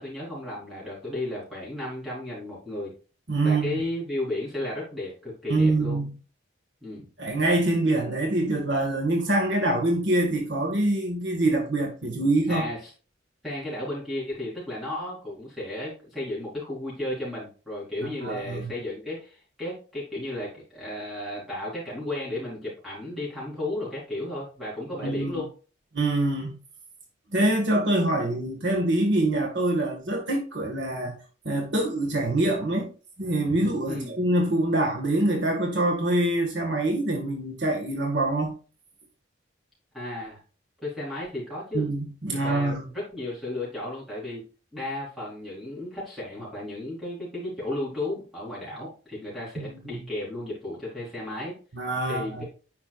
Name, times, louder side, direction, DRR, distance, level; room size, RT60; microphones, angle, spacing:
voice 1, 0.0-2.9 3.4-6.0 6.8-7.1 12.5-12.9 13.4-25.5 33.9-34.1 39.9-40.4 40.8-41.8 42.3-44.4 44.7-51.5 52.1-52.4, left 1 dB, ahead, 4.3 m, -34 dB
voice 2, 3.3-3.8 5.5-6.1 7.2-12.7 18.2-18.7 25.0-25.4 25.9-26.6 27.3-31.2 31.5-32.9 33.2-38.5 41.7-42.9 49.6-50.0 51.7-52.4, right 2 dB, 60° right, 1.7 m, -25 dB
10.0 x 5.9 x 2.5 m
head